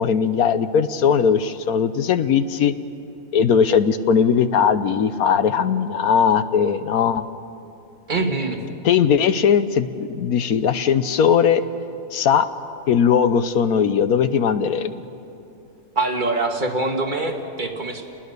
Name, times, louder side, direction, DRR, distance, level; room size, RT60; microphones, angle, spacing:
voice 1, 0.0-2.7 3.3-7.3 8.8-11.6 12.1-12.5 12.9-14.9, left 7 dB, 75° left, 12 dB, 1.2 m, -19 dB
voice 2, 8.1-8.6 16.0-18.0, right 2 dB, 30° right, 2 dB, 2.1 m, -24 dB
29.5 x 20.0 x 6.7 m, 2.8 s
omnidirectional pair, 1.6 m